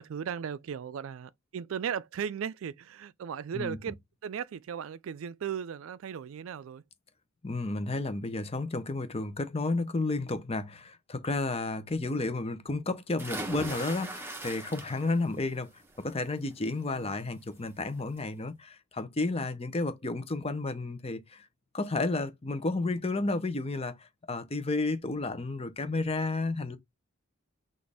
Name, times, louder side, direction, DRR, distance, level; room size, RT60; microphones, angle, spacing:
voice 1, 0.0-3.9 4.2-6.8 16.9-17.3, right 8 dB, 70° right, 0.3 m, -37 dB
voice 2, 7.4-15.7 16.0-21.4 21.7-26.8, left 2 dB, 30° left, 0.7 m, -32 dB
sound 1, 13.2-15.3 15.7-16.1 17.5-17.6 18.0-18.1, right 2 dB, 10° right, 1.0 m, -39 dB
6.2 x 2.5 x 3.4 m
head